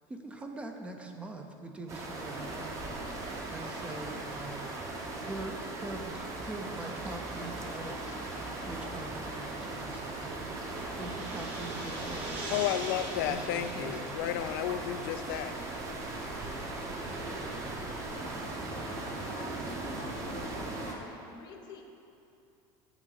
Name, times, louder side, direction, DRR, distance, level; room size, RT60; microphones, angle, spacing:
voice 1, 0.1-2.8 3.5-4.7 5.2-12.7 13.3-14.0, right 2 dB, 10° right, 4 dB, 0.5 m, -43 dB
sound 1, 1.9-21.0, right 2 dB, 25° right, 0.9 m, -38 dB
sound 2, 5.7-15.2, right 2 dB, 50° right, 1.9 m, -46 dB
voice 2, 12.5-15.5, left 11 dB, 90° left, 10 dB, 0.4 m, -32 dB
voice 3, 18.7-20.5 20.8-21.8, left 5 dB, 35° left, 4 dB, 0.9 m, -48 dB
9.0 x 8.5 x 3.9 m, 2.8 s
cardioid pair, 165°, 11 cm